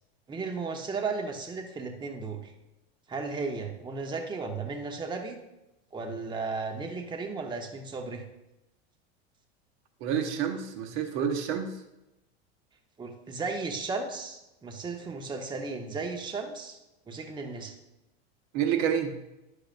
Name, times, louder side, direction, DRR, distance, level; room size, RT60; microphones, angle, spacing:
voice 1, 0.3-2.5 3.1-5.4 5.9-8.2 13.0-16.8 17.1-17.7, right 4 dB, 15° right, 3 dB, 0.9 m, -35 dB
voice 2, 10.0-11.7 18.5-19.1, right 8 dB, 55° right, 6 dB, 1.0 m, -28 dB
10.0 x 6.7 x 2.5 m, 0.93 s
supercardioid pair, 120°, 31 cm